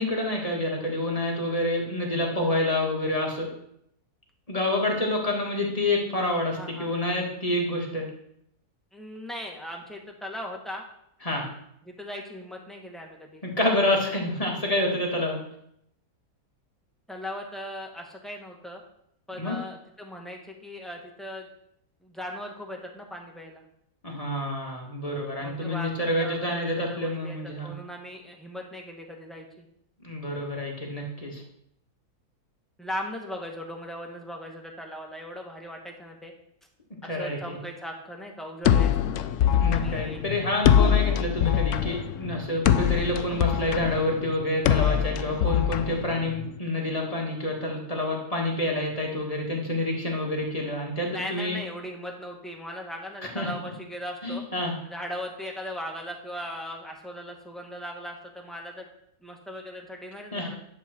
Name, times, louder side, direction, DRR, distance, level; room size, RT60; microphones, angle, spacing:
voice 1, 0.0-3.5 4.5-8.1 11.2-11.5 13.4-15.4 19.4-19.6 24.0-27.7 30.0-31.4 37.0-37.6 39.6-51.6 53.4-53.5 54.2-54.7 60.3-60.5, left 1 dB, 25° left, -1 dB, 2.1 m, -28 dB
voice 2, 6.5-6.9 8.9-10.8 11.8-13.4 17.1-18.8 19.3-21.5 22.0-23.6 25.4-27.4 27.6-29.6 32.8-36.3 37.0-39.3 39.7-40.2 51.0-54.4 54.8-58.9 59.2-60.5, equal, ahead, 0 dB, 1.6 m, -38 dB
sound 1, 38.6-46.6, left 9 dB, 70° left, 0.8 m, -23 dB
10.5 x 7.9 x 4.5 m, 0.73 s
omnidirectional pair, 1.6 m